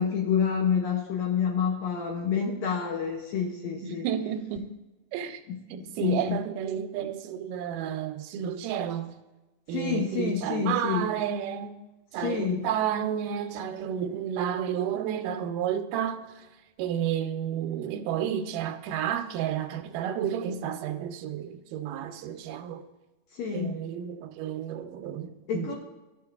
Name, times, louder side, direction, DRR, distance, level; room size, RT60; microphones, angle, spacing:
voice 1, 0.0-4.1 5.5-6.4 9.7-11.1 12.2-12.7 23.3-23.8 25.5-25.8, left 7 dB, 75° left, 1.6 m, -28 dB
voice 2, 3.8-4.7 5.1-5.4 5.7-9.1 9.7-11.7 12.1-16.5 16.8-22.8 23.5-25.8, right 9 dB, 90° right, 2.2 m, -31 dB
13.5 x 5.1 x 2.4 m
omnidirectional pair, 3.7 m